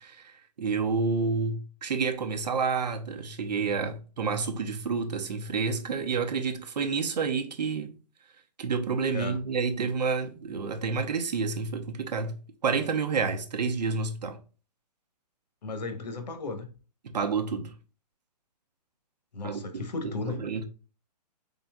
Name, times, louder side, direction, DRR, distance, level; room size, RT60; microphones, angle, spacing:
voice 1, 0.0-8.0 8.6-12.4 12.6-14.4 17.0-17.7 19.4-20.1 20.4-20.7, right 5 dB, 80° right, 0.8 m, -29 dB
voice 2, 15.6-16.7 19.3-20.5, left 3 dB, 85° left, 1.1 m, -35 dB
4.0 x 3.7 x 2.3 m
hypercardioid pair, 150°, 21 cm